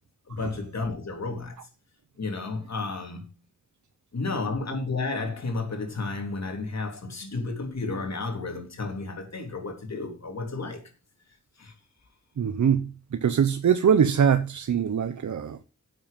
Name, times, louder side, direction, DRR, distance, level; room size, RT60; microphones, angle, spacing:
voice 1, 0.3-1.7 2.2-3.3 4.1-10.8 11.6-11.7, left 3 dB, 65° left, 3.6 m, -32 dB
voice 2, 12.4-15.6, right 7 dB, 75° right, 0.9 m, -23 dB
10.5 x 7.8 x 5.3 m
wide cardioid pair, 85°, 30 cm